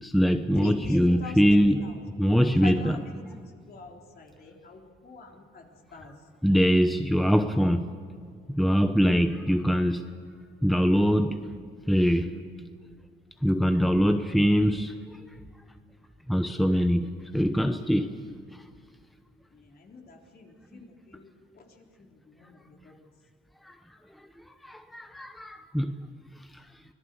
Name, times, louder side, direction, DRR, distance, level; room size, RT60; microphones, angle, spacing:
voice 1, 0.0-1.8 2.2-2.9 6.4-7.9 8.5-10.0 10.6-11.4 11.9-12.3 13.4-15.2 16.3-18.1 23.6-23.7 24.6-25.9, equal, ahead, 8 dB, 1.0 m, -23 dB
voice 2, 0.5-6.3 19.5-23.0, left 3 dB, 50° left, 1 dB, 3.9 m, -44 dB
25.0 x 18.5 x 8.1 m, 2.1 s
cardioid pair, 90°, 20 cm